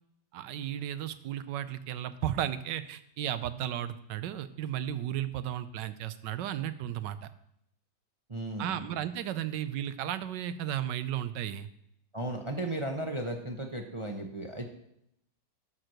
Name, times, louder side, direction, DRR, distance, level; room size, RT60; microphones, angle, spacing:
voice 1, 0.3-7.3 8.6-11.7, right 11 dB, 85° right, 13 dB, 1.3 m, -34 dB
voice 2, 8.3-8.8 12.1-14.7, right 1 dB, 25° right, 3 dB, 0.6 m, -35 dB
12.5 x 4.6 x 6.4 m, 0.75 s
omnidirectional pair, 1.8 m